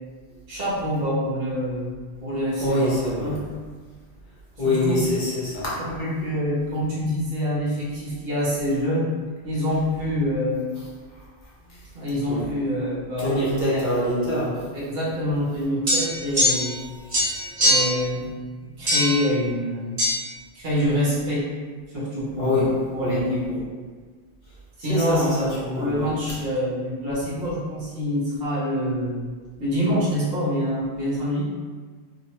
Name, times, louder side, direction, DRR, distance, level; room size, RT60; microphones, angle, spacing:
voice 1, 0.5-1.9 2.2-2.9 3.2-3.4 4.6-5.0 5.8-9.1 9.4-10.7 11.9-13.8 14.7-16.8 17.6-18.3 18.6-20.0 20.5-21.5 21.9-23.4 24.8-29.3 29.6-31.4, equal, 60° right, -7 dB, 0.9 m, -26 dB
voice 2, 2.6-3.3 4.6-5.8 12.3-12.5 13.2-14.6 22.4-22.7 23.0-23.2 23.5-23.6 24.8-26.1, left 1 dB, 45° left, -8 dB, 0.9 m, -24 dB
sound 1, 15.9-16.8 17.1-18.0 18.9-19.2 20.0-20.1, left 1 dB, 30° right, 1.1 m, -21 dB
2.7 x 2.1 x 2.8 m, 1.5 s
omnidirectional pair, 1.2 m